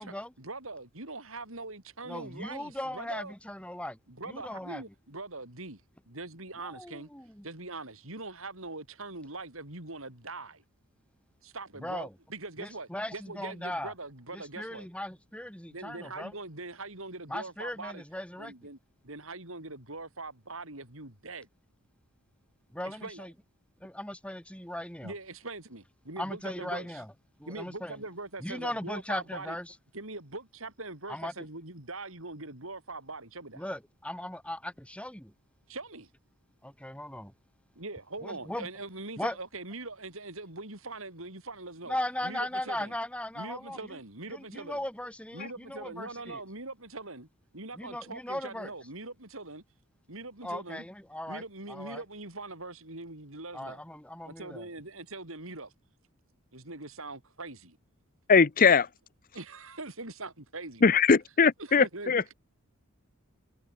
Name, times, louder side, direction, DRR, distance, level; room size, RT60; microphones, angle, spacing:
voice 1, 0.0-3.3 4.1-5.8 6.1-7.1 7.4-10.6 11.4-14.9 15.7-18.0 18.4-18.8 19.0-21.5 22.8-23.3 25.0-27.0 27.5-29.6 29.9-33.6 35.7-36.1 37.8-42.0 42.2-42.9 43.3-44.8 45.3-47.3 47.5-49.6 50.1-50.8 51.3-53.8 54.2-55.7 56.5-57.8 59.3-61.0 61.6-62.3, right 2 dB, 65° right, 5.5 m, -42 dB
voice 2, 2.0-4.0 4.3-4.8 6.6-7.5 11.8-12.1 12.6-13.9 14.3-16.4 17.3-18.5 22.7-23.3 23.8-25.1 26.2-27.1 27.4-28.0 28.4-29.7 31.1-31.3 33.5-35.3 36.6-37.3 38.2-38.7 39.2-39.4 41.9-44.0 44.3-46.4 47.7-48.7 50.4-51.4 51.7-52.0 53.5-54.7, left 1 dB, 5° left, 6.2 m, -38 dB
voice 3, 58.3-58.9 60.8-62.3, left 5 dB, 40° left, 0.6 m, -21 dB
head